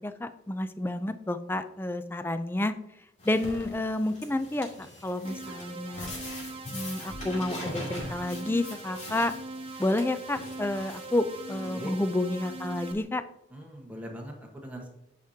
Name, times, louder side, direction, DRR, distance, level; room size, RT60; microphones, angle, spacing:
voice 1, 0.0-2.7 3.2-6.1 6.7-9.3 9.8-13.2, left 1 dB, 10° left, 11 dB, 0.3 m, -30 dB
sound 1, 3.2-13.0, left 1 dB, 35° left, 2.5 m, -43 dB
sound 2, 3.4-3.7 4.4-5.1 6.0-6.7 7.1-7.3 7.6-8.2, left 1 dB, 80° left, 2.2 m, -43 dB
sound 3, 5.2-12.9, right 2 dB, 30° right, 0.7 m, -42 dB
voice 2, 13.5-14.9, equal, 10° right, 0 dB, 1.2 m, -41 dB
9.2 x 5.1 x 2.7 m, 0.84 s
head